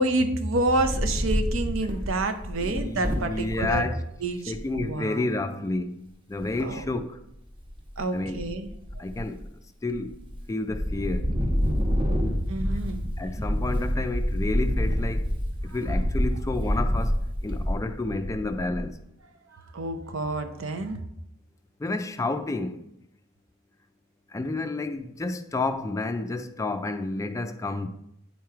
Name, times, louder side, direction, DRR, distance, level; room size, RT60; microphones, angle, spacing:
voice 1, 0.0-3.9 4.2-5.3 6.6-6.9 8.0-9.1 12.5-13.0 19.5-21.0, right 2 dB, 75° right, 0.7 m, -28 dB
Wind, 0.6-3.7 4.2-4.3 4.5-4.9 6.4-7.0 7.5-8.0 8.3-9.5 9.9-10.4 10.7-18.9, equal, 25° right, 0.9 m, -27 dB
voice 2, 2.6-4.0 4.5-5.9 6.3-7.1 8.1-8.4 9.0-9.3 9.8-10.1 10.5-11.3 13.2-15.2 15.7-17.1 17.4-18.9 21.8-22.8 24.3-27.9, left 2 dB, 15° left, 0.3 m, -30 dB
9.3 x 3.1 x 4.7 m
head